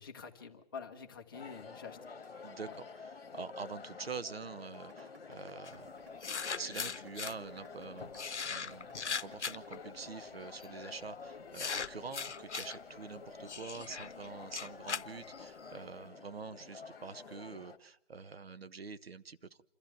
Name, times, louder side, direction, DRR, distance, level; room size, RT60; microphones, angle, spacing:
voice 1, 0.0-2.1, left 6 dB, 20° left, 4 dB, 1.0 m, -47 dB
sound 1, 1.3-17.8, left 5 dB, 60° left, 1.5 m, -50 dB
voice 2, 2.4-6.1 6.5-19.6, right 5 dB, 60° right, 13 dB, 1.0 m, -46 dB
sound 2, 4.7-10.7, right 4 dB, 20° right, 1.4 m, -59 dB
sound 3, 5.6-5.7 6.2-7.3 8.1-9.8 10.6-10.9 11.5-12.8 13.5-15.7, left 5 dB, 85° left, 0.8 m, -39 dB
27.0 x 13.5 x 8.9 m, 0.80 s
figure-of-eight pair, 160°, 34 cm